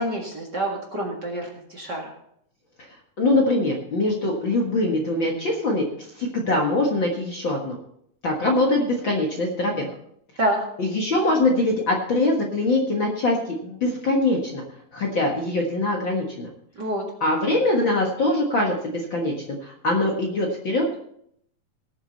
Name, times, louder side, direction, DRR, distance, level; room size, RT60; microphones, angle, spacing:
voice 1, 0.0-2.1 10.4-10.6 16.8-17.0, right 1 dB, 40° right, 1 dB, 2.0 m, -27 dB
voice 2, 3.2-5.9 6.2-7.8 8.2-9.9 10.8-14.6 14.9-16.5 17.2-21.0, left 2 dB, 45° left, 0 dB, 1.8 m, -23 dB
19.0 x 7.3 x 4.1 m, 0.70 s
omnidirectional pair, 3.7 m